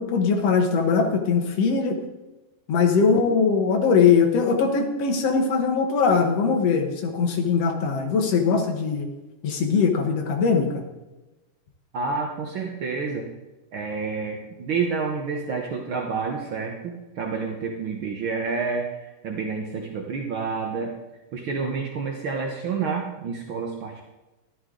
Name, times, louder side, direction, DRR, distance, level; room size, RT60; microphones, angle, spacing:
voice 1, 0.0-2.0 2.7-9.1 9.4-10.8, left 5 dB, 55° left, 3 dB, 2.1 m, -21 dB
voice 2, 11.9-13.3 13.7-18.9 19.2-20.9 21.3-24.0, right 5 dB, 75° right, 1 dB, 1.1 m, -29 dB
13.5 x 11.0 x 3.8 m, 1.1 s
omnidirectional pair, 3.8 m